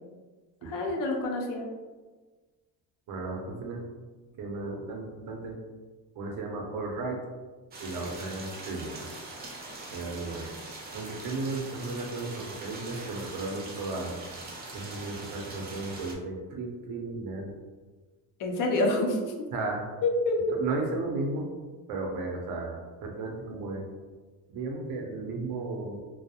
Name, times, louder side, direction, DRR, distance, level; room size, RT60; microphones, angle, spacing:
voice 1, 0.7-1.7 18.4-19.5 20.0-20.4, left 2 dB, 70° left, 1 dB, 0.5 m, -27 dB
voice 2, 3.1-3.8 4.4-5.6 6.1-7.2 7.8-9.1 9.9-10.5 10.9-14.2 14.7-17.6 19.5-19.8 20.4-21.5 21.9-23.8 24.5-26.0, right 3 dB, 70° right, 1 dB, 0.6 m, -34 dB
sound 1, 7.7-16.1, right 2 dB, 30° right, 0.4 m, -42 dB
2.3 x 2.0 x 2.7 m, 1.3 s
cardioid pair, 150°, 34 cm